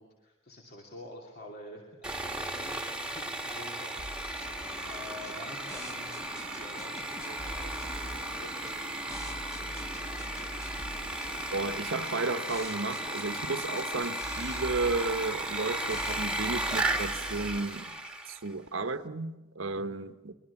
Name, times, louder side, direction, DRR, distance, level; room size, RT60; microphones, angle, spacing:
voice 1, 0.0-1.9 2.2-4.4 4.9-10.4 19.8-20.0, left 1 dB, 50° left, 0 dB, 2.7 m, -49 dB
Sawing, 2.0-18.5, right 1 dB, 5° right, 1.6 m, -35 dB
sound 1, 3.8-17.7, equal, 30° left, 2.4 m, -47 dB
sound 2, 4.0-17.6, equal, 15° left, 1.3 m, -45 dB
voice 2, 11.5-17.9 18.3-20.3, right 3 dB, 70° right, 10 dB, 1.1 m, -33 dB
23.0 x 22.5 x 7.1 m, 1.1 s
head